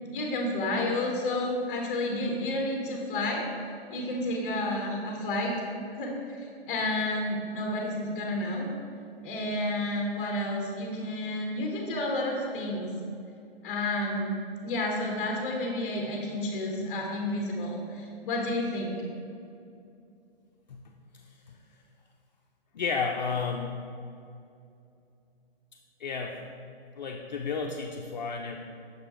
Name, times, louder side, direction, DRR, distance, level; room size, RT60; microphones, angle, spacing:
voice 1, 0.1-3.4 3.9-5.6 5.9-8.7 9.2-12.9 13.6-19.0, left 1 dB, 15° left, 0 dB, 0.7 m, -31 dB
voice 2, 22.7-23.7 26.0-26.4 27.0-28.6, left 5 dB, 45° left, 1 dB, 0.4 m, -32 dB
6.5 x 4.9 x 3.6 m, 2.5 s
hypercardioid pair, 165°, 31 cm